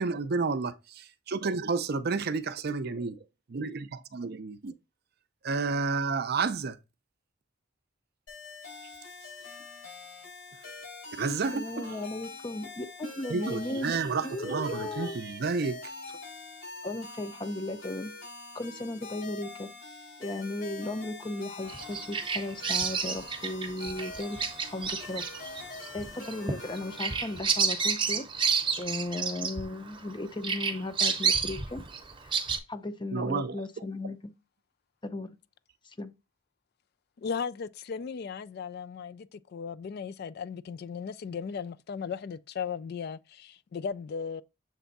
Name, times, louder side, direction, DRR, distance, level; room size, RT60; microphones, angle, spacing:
voice 1, 0.0-3.2 3.5-3.8 4.1-4.7 5.4-6.8 11.2-12.0 13.3-15.8 33.1-33.6, right 4 dB, 50° right, 0.5 m, -30 dB
sound 1, 8.3-27.4, left 3 dB, 75° left, 4.4 m, -45 dB
voice 2, 11.5-15.1 16.8-18.1 18.5-19.7 20.2-25.2 25.9-28.2 28.7-31.8 32.2-32.4 32.7-34.3 35.0-35.3 35.8-36.1, left 2 dB, 25° left, 0.6 m, -36 dB
Bird vocalization bird call bird song, 21.7-30.1 30.4-32.6, right 5 dB, 25° right, 0.8 m, -30 dB
voice 3, 37.2-44.4, left 6 dB, 50° left, 0.3 m, -36 dB
7.2 x 3.4 x 4.0 m
head